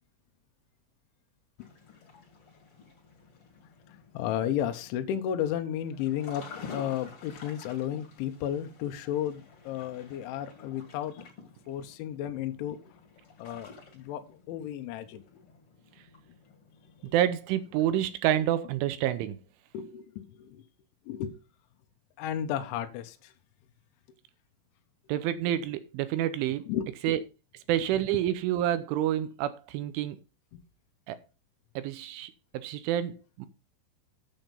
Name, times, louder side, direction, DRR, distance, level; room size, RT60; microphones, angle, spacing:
sound 1, 1.6-18.0, left 5 dB, 40° left, 2.3 m, -51 dB
voice 1, 4.1-11.2 11.7-12.8 13.4-15.2 17.1-17.2 19.7-20.6 21.1-21.4 22.2-23.3 26.7-27.2, left 10 dB, 80° left, 3.2 m, -33 dB
voice 2, 17.1-19.4 25.1-26.7 27.0-27.2 27.7-30.2 31.1-31.2 31.8-33.5, right 12 dB, 80° right, 3.2 m, -28 dB
9.0 x 7.7 x 5.3 m
omnidirectional pair, 5.7 m